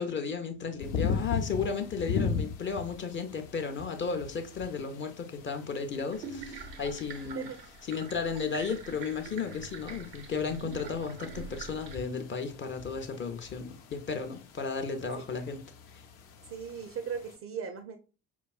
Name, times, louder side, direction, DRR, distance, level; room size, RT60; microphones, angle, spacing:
voice 1, 0.0-7.5 7.9-15.6, left 5 dB, 25° left, 0.5 m, -34 dB
sound 1, 0.8-17.4, left 6 dB, 60° left, 0.8 m, -39 dB
sound 2, 6.1-12.0, right 5 dB, 85° right, 0.7 m, -45 dB
voice 2, 16.5-18.0, right 7 dB, 30° right, 0.4 m, -37 dB
5.1 x 2.3 x 2.4 m
figure-of-eight pair, 55°, 49 cm